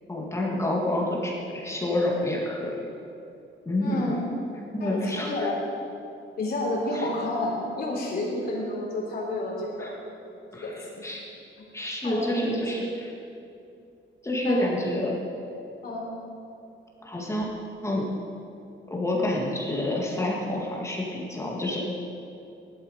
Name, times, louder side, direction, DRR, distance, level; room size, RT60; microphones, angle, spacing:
voice 1, 0.1-2.9 3.7-4.0 4.7-5.5 6.9-7.1 9.8-9.9 10.5-11.2 11.7-13.1 14.2-15.1 17.0-17.5 17.8-18.1 18.9-21.8, left 1 dB, 15° left, -3 dB, 2.0 m, -28 dB
voice 2, 3.8-4.2 4.8-5.6 6.4-9.9 10.6-11.0 12.0-12.4 14.4-14.7 15.8-16.1, left 2 dB, 50° left, -3 dB, 3.6 m, -30 dB
16.5 x 12.0 x 5.3 m, 2.7 s
cardioid pair, 160°, 20 cm